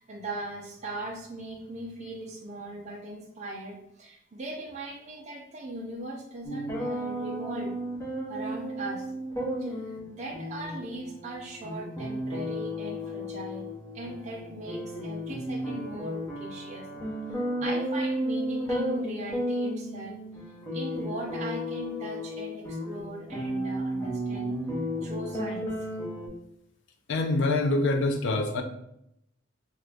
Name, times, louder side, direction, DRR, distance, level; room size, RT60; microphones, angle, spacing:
voice 1, 0.0-7.7 8.3-9.1 9.6-13.7 13.9-16.9 17.3-20.2 20.7-24.6 25.0-25.7, right 1 dB, 35° right, -1 dB, 0.4 m, -39 dB
sound 1, 6.4-26.3, equal, 15° left, 0.8 m, -33 dB
voice 2, 27.1-28.6, left 2 dB, 60° left, 5 dB, 0.4 m, -25 dB
2.9 x 2.4 x 3.2 m, 0.77 s
head